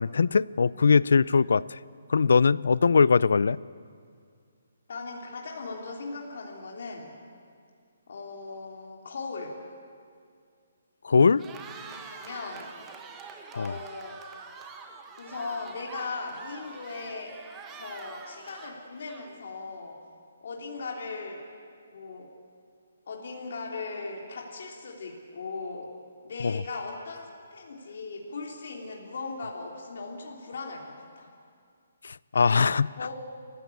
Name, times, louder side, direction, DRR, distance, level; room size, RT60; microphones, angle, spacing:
voice 1, 0.0-1.8 2.1-3.6 11.0-11.4 13.6-13.8 26.4-26.6 32.0-32.9, left 5 dB, 75° left, 21 dB, 0.5 m, -21 dB
voice 2, 4.9-7.2 8.1-9.6 11.9-12.7 13.5-14.2 15.2-17.4 17.8-20.0 20.4-21.4 21.9-22.3 23.1-25.9 26.2-31.3 32.3-32.6 33.0-33.1, left 4 dB, 55° left, -1 dB, 3.3 m, -38 dB
Cheering, 11.3-19.5, right 5 dB, 10° right, 1.2 m, -45 dB
28.5 x 15.5 x 8.5 m, 2.2 s
hypercardioid pair, 170°, 0 cm